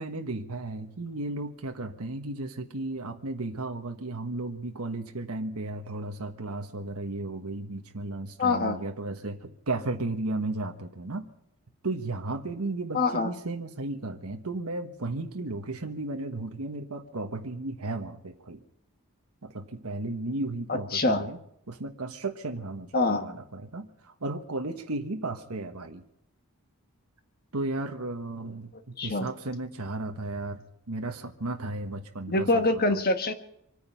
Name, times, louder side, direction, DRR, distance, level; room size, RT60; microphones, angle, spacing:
voice 1, 0.0-11.3 11.8-18.6 19.4-21.4 21.7-26.0 27.5-28.7 29.0-30.6 30.9-32.8, right 2 dB, 90° right, 5 dB, 1.4 m, -34 dB
voice 2, 8.4-8.8 12.9-13.3 20.7-21.2 22.9-23.2 29.0-29.3 32.3-33.3, left 2 dB, 45° left, 7 dB, 1.5 m, -25 dB
25.5 x 9.6 x 5.8 m, 0.74 s
head